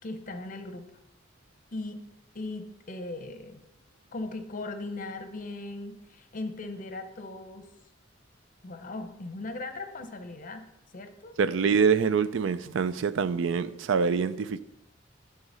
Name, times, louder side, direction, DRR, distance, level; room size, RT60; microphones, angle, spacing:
voice 1, 0.0-0.9 1.7-2.0 2.3-3.6 4.1-7.7 8.6-10.7 10.9-11.3, left 2 dB, 45° left, 0.7 m, -38 dB
voice 2, 11.4-14.6, right 6 dB, 70° right, 0.4 m, -25 dB
11.0 x 3.7 x 5.6 m
head